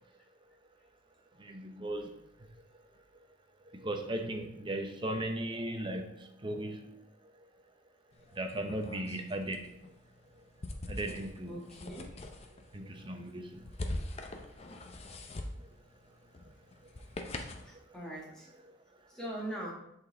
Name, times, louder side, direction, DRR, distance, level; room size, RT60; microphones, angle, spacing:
voice 1, 1.4-2.1 3.7-7.0 8.4-9.6 10.9-11.6 12.7-13.6, right 1 dB, 25° right, 5 dB, 0.6 m, -37 dB
sound 1, 8.1-17.8, left 1 dB, 30° left, 0.5 m, -44 dB
voice 2, 11.5-12.1 17.6-18.5 19.1-19.7, right 1 dB, 5° left, -5 dB, 1.5 m, -41 dB
7.8 x 4.0 x 3.8 m, 0.79 s
head